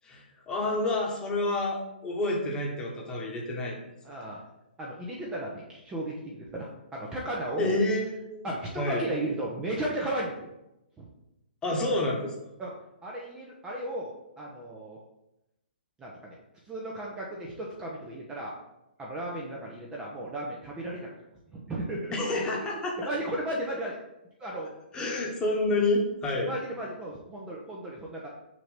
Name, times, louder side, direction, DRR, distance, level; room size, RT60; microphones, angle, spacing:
voice 1, 0.0-3.8 7.6-8.4 8.8-9.0 11.6-12.3 22.1-22.9 24.9-26.5, left 2 dB, 15° left, -2 dB, 1.3 m, -28 dB
voice 2, 4.0-4.4 4.8-7.8 8.4-10.5 11.0-11.1 12.6-12.7 13.0-15.0 16.0-16.4 16.6-18.5 19.0-21.1 21.5-22.1 22.5-22.7 23.0-24.0 24.4-24.7 26.4-28.3, right 1 dB, 15° right, -3 dB, 0.8 m, -35 dB
6.1 x 2.9 x 5.2 m, 0.89 s
hypercardioid pair, 145°, 6 cm